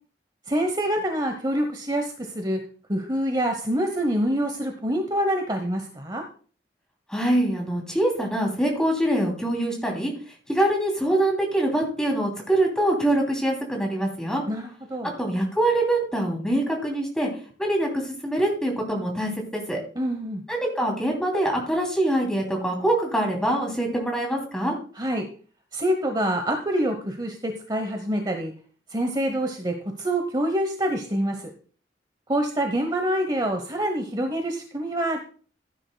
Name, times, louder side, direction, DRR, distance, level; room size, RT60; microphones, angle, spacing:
voice 1, 0.5-2.6 2.9-6.2 14.5-15.1 20.0-20.4 25.0-25.2 25.7-28.5 28.9-31.4 32.3-35.2, right 1 dB, 25° right, 4 dB, 1.0 m, -26 dB
voice 2, 7.1-10.1 10.5-14.4 15.2-17.3 17.6-19.8 20.5-24.7, right 1 dB, 5° left, 0 dB, 3.0 m, -24 dB
15.5 x 9.7 x 2.3 m, 0.42 s
head